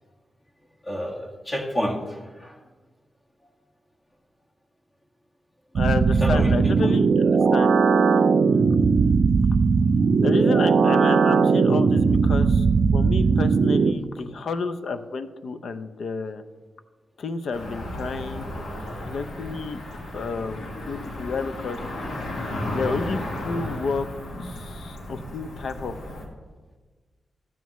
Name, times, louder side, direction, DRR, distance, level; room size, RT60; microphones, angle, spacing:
voice 1, 0.8-2.6 6.2-6.5 6.8-6.9, equal, 30° left, 0 dB, 1.8 m, -29 dB
voice 2, 5.7-7.7 10.2-12.7 12.9-16.4 17.2-18.5 19.1-19.8 20.1-21.8 22.7-24.1 24.4-25.9, left 4 dB, 70° left, 10 dB, 0.6 m, -30 dB
sound 1, 5.8-13.9, right 5 dB, 65° right, 0.4 m, -19 dB
Cricket / Motor vehicle (road), 17.5-26.2, left 1 dB, 90° left, 1.7 m, -34 dB
13.5 x 9.2 x 3.1 m, 1.4 s
cardioid pair, 85°, 0 cm